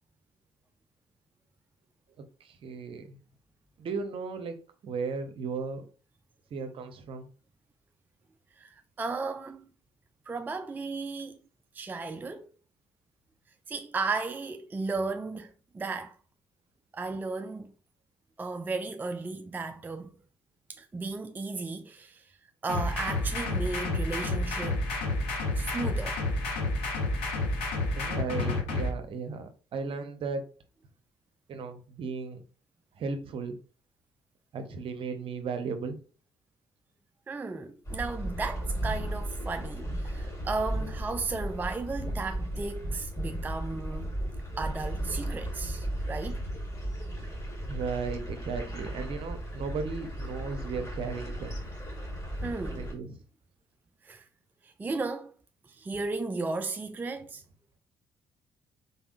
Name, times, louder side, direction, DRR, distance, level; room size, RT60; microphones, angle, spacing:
voice 1, 2.4-3.2 3.8-5.8 6.5-7.3 27.9-30.4 31.5-32.4 33.0-33.6 34.5-36.0 47.6-51.6 52.7-53.2, right 4 dB, 45° right, 0.7 m, -35 dB
voice 2, 8.6-9.7 10.3-11.4 11.7-12.5 13.7-16.2 16.9-17.7 18.4-20.1 20.7-22.3 22.6-24.8 25.6-26.2 37.3-44.1 44.6-46.4 52.4-52.9 54.0-54.3 54.6-55.3 55.7-57.4, right 3 dB, 15° right, 0.4 m, -35 dB
sound 1, 22.7-28.9, left 2 dB, 60° left, 1.7 m, -30 dB
sound 2, 37.9-53.0, right 1 dB, 25° left, 2.0 m, -35 dB
4.1 x 3.5 x 2.4 m
figure-of-eight pair, 45°, 13 cm